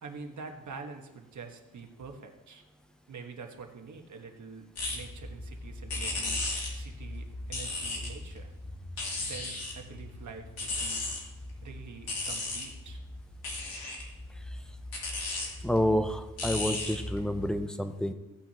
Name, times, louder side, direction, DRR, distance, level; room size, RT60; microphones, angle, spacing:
voice 1, 0.0-2.6 3.1-4.6 4.9-6.4 6.7-8.5 9.3-11.0 11.6-13.0, right 4 dB, 55° right, 3 dB, 1.4 m, -46 dB
sound 1, 4.8-17.6, left 2 dB, 90° left, 2.8 m, -36 dB
voice 2, 15.6-18.1, equal, ahead, 8 dB, 0.5 m, -29 dB
16.0 x 9.1 x 2.9 m, 0.99 s
wide cardioid pair, 160°, 35 cm